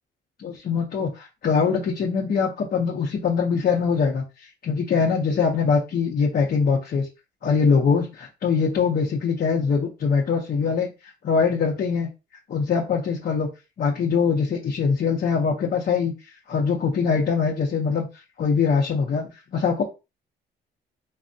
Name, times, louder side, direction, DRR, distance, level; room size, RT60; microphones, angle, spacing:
voice 1, 0.4-7.1 7.4-10.9 11.2-12.1 12.5-13.5 13.8-16.1 16.5-18.1 18.4-19.8, left 5 dB, 50° left, -1 dB, 0.6 m, -23 dB
3.3 x 2.0 x 2.5 m, 0.28 s
cardioid pair, 90°, 20 cm